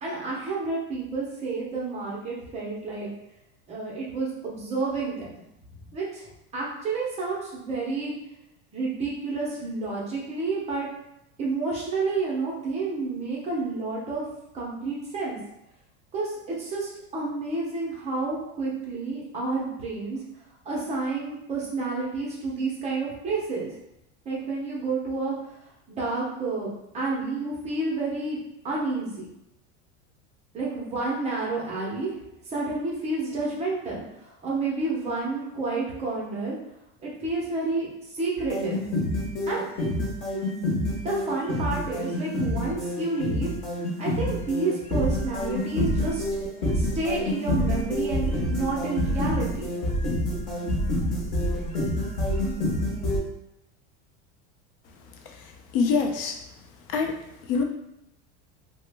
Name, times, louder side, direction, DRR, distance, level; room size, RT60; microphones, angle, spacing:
voice 1, 0.0-3.1 3.7-5.3 5.9-8.1 8.7-10.9 11.4-14.2 14.5-15.4 16.1-20.2 20.6-23.7 24.3-25.6 25.9-28.4 28.6-29.3 30.5-32.2 32.4-36.6 37.0-38.9 39.5-39.7 41.0-43.5 44.0-46.2 46.7-49.7, right 3 dB, 20° right, -4 dB, 0.5 m, -30 dB
sound 1, 38.4-53.2, left 1 dB, 35° left, 0.9 m, -27 dB
voice 2, 55.7-56.4 56.9-57.1 57.5-57.6, left 5 dB, 55° left, 3 dB, 0.5 m, -23 dB
3.0 x 2.1 x 3.3 m, 0.83 s
supercardioid pair, 165°, 34 cm